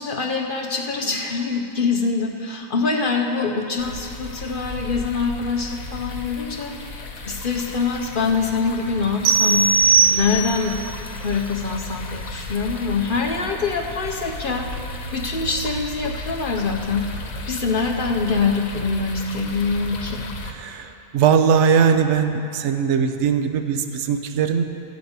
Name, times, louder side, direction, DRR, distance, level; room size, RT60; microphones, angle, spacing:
voice 1, 0.0-6.7 7.2-9.7 10.1-17.0 17.5-20.3, left 4 dB, 50° left, 2 dB, 0.7 m, -24 dB
sound 1, 3.8-20.5, left 1 dB, 80° left, 1.3 m, -34 dB
sound 2, 9.2-10.8, right 5 dB, 80° right, 1.2 m, -18 dB
voice 2, 20.4-24.6, right 7 dB, 65° right, 7 dB, 0.9 m, -20 dB
14.0 x 5.2 x 7.9 m, 2.7 s
omnidirectional pair, 1.4 m